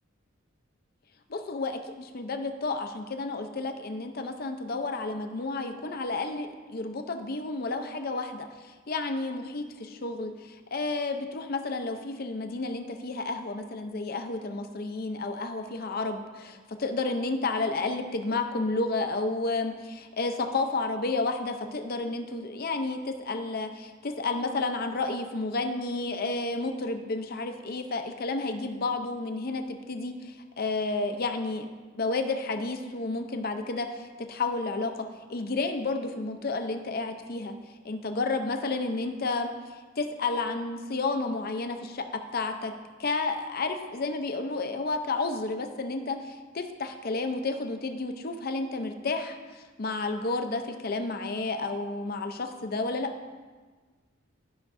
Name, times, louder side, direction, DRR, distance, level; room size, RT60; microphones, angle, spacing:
voice 1, 1.3-31.7 31.9-37.5 37.8-53.1, left 3 dB, 50° left, 7 dB, 0.6 m, -31 dB
13.0 x 5.8 x 2.6 m, 1.4 s
head